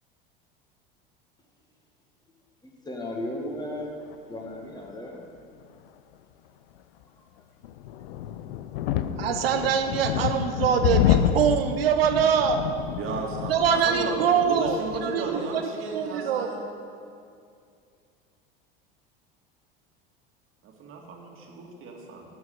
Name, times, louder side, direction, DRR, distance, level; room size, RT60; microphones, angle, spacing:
voice 1, 2.6-3.9 4.2-5.2, left 1 dB, 15° left, 0 dB, 1.9 m, -35 dB
sound 1, 7.6-15.1, left 10 dB, 75° left, 0.5 m, -28 dB
voice 2, 9.2-12.6 13.5-16.5, right 7 dB, 90° right, 7 dB, 0.7 m, -24 dB
voice 3, 13.0-16.6 20.6-22.3, right 3 dB, 45° right, 0 dB, 2.2 m, -34 dB
12.5 x 4.7 x 8.0 m, 2.4 s
hypercardioid pair, 95°, 29 cm